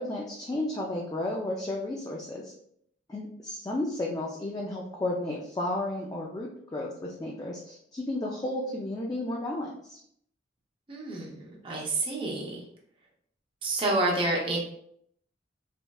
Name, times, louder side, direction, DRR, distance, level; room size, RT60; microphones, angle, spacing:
voice 1, 0.0-2.5 3.1-10.0, left 1 dB, 20° left, -2 dB, 0.3 m, -33 dB
voice 2, 10.9-12.6 13.6-14.6, right 2 dB, 25° right, -3 dB, 0.6 m, -29 dB
3.4 x 3.1 x 2.3 m, 0.69 s
head